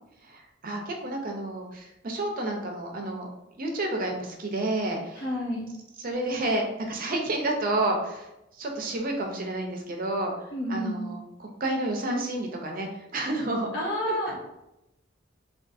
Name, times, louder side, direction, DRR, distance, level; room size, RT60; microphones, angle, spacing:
voice 1, 0.3-3.3 3.6-5.2 6.0-8.3 8.6-10.3 10.7-13.7, right 2 dB, 50° right, 2 dB, 0.6 m, -30 dB
voice 2, 5.2-5.7 10.5-11.1 13.7-14.5, equal, 75° left, -3 dB, 0.9 m, -30 dB
3.6 x 2.3 x 2.5 m, 0.89 s
head